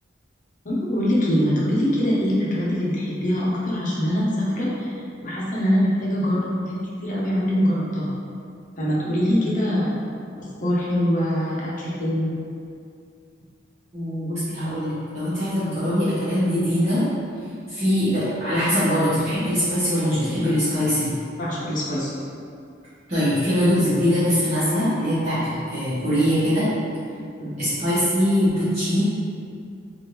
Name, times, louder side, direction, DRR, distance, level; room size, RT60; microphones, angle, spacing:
voice 1, 0.6-4.9 5.2-6.8 7.0-8.1 8.8-9.9 10.6-12.3 21.4-22.1 27.4-27.6, equal, 45° left, -6 dB, 0.7 m, -23 dB
voice 2, 13.9-17.0 17.7-21.1 23.1-26.7 27.6-29.0, equal, 40° right, -15 dB, 1.1 m, -22 dB
3.4 x 2.5 x 2.9 m, 2.4 s
head